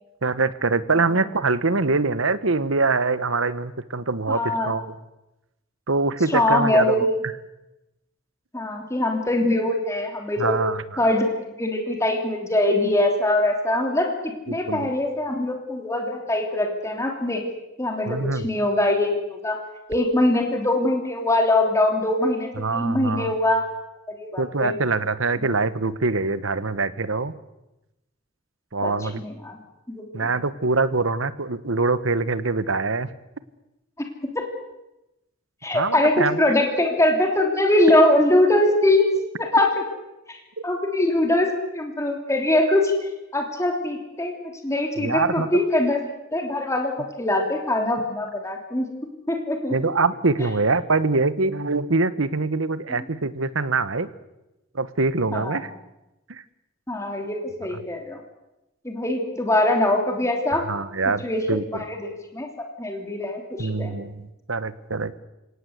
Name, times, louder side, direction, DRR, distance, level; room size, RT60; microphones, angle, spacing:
voice 1, 0.2-4.9 5.9-7.1 10.4-10.8 14.5-14.9 18.1-18.5 22.6-23.3 24.4-27.3 28.7-29.2 30.1-33.1 35.7-36.6 40.6-40.7 45.0-45.5 49.7-54.1 54.7-55.7 56.3-56.4 57.7-57.8 60.7-61.8 63.6-65.2, right 3 dB, 85° right, 15 dB, 1.3 m, -24 dB
voice 2, 4.3-4.7 6.3-7.2 8.5-10.6 11.0-11.3 11.6-17.4 17.8-19.6 19.9-23.6 24.1-24.7 25.4-25.5 28.8-29.6 29.9-30.3 34.2-34.4 35.6-39.1 39.4-39.8 40.3-41.5 41.7-42.9 43.3-44.3 44.6-46.0 46.3-48.9 49.3-49.8 52.9-53.1 55.3-55.6 56.9-58.2 58.8-60.6 61.2-63.9, left 1 dB, 15° left, 3 dB, 3.2 m, -22 dB
29.5 x 18.0 x 8.2 m, 0.95 s
head